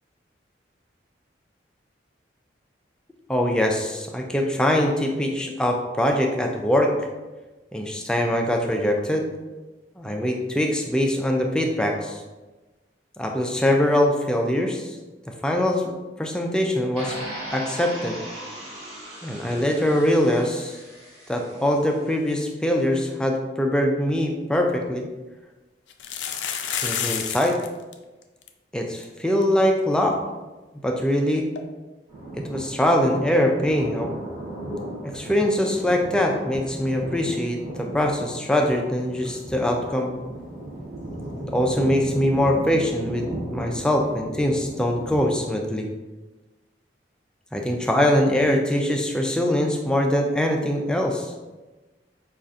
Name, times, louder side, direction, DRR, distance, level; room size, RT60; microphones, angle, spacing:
voice 1, 3.3-6.9 7.7-9.3 10.0-12.2 13.2-15.0 15.3-15.8 16.2-17.2 17.5-18.1 19.2-20.8 21.3-25.0 26.8-27.6 28.7-30.2 30.8-31.5 32.3-34.1 35.0-40.1 41.5-45.9 47.5-51.3, left 1 dB, 5° left, 1 dB, 0.3 m, -23 dB
sound 1, 17.0-22.0, right 1 dB, 65° right, 1.4 m, -38 dB
sound 2, 24.3-24.4 24.7-24.8 25.9-27.7 27.9-28.0 28.2-28.5 29.0-29.1 29.4-29.5 31.5-31.6, left 8 dB, 85° left, 0.3 m, -29 dB
Thunder, 32.1-45.3, right 1 dB, 20° right, 1.0 m, -35 dB
5.3 x 2.4 x 2.4 m, 1.2 s
head